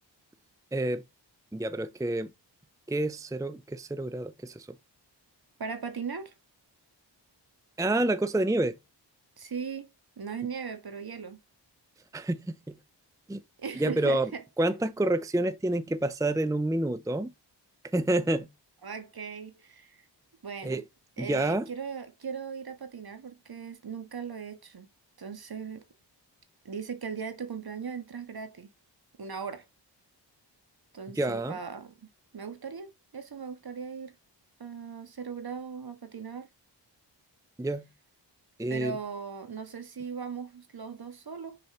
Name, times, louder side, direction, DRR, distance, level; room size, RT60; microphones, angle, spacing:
voice 1, 0.7-1.0 1.5-2.3 2.9-4.8 7.8-8.8 12.1-12.8 13.3-13.4 13.8-14.3 14.6-17.3 17.9-18.5 20.6-20.8 21.2-21.7 31.1-31.6 37.6-37.9 38.6-39.0, right 1 dB, 10° right, 0.6 m, -28 dB
voice 2, 5.6-6.3 9.4-9.9 10.2-11.4 13.6-14.4 18.8-20.0 20.4-20.8 21.2-24.9 25.2-25.8 26.7-28.7 29.2-29.6 30.9-34.1 34.6-36.5 38.7-41.6, right 6 dB, 55° right, 1.9 m, -38 dB
6.6 x 4.2 x 5.7 m
cardioid pair, 70°, 44 cm